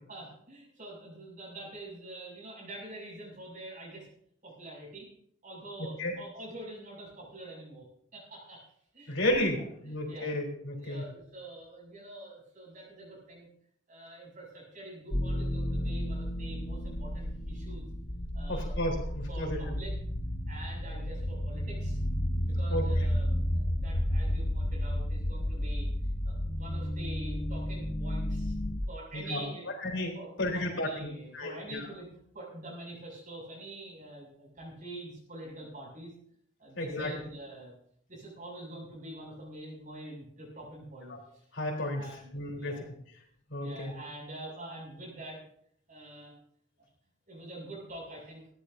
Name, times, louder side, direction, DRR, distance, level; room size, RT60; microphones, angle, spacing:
voice 1, 0.1-4.1 4.4-5.1 5.4-7.9 8.1-8.6 8.9-9.2 9.6-10.3 10.8-13.5 13.9-17.9 18.3-18.8 19.3-19.9 20.5-22.0 22.4-25.9 26.2-28.5 28.9-29.7 30.1-36.1 36.6-37.7 38.1-41.4 42.0-42.9 43.6-45.4 45.9-46.3 47.3-48.4, right 1 dB, 45° right, -3 dB, 7.1 m, -45 dB
voice 2, 9.1-11.0 18.5-19.6 22.7-22.9 29.1-29.5 29.8-31.1 31.3-31.9 36.8-37.1 41.1-41.2 41.5-42.1 42.3-42.8 43.5-43.9, left 1 dB, 75° left, 0 dB, 4.0 m, -32 dB
sound 1, 15.1-28.8, equal, 30° left, 1.2 m, -32 dB
18.5 x 15.0 x 2.8 m, 0.66 s
head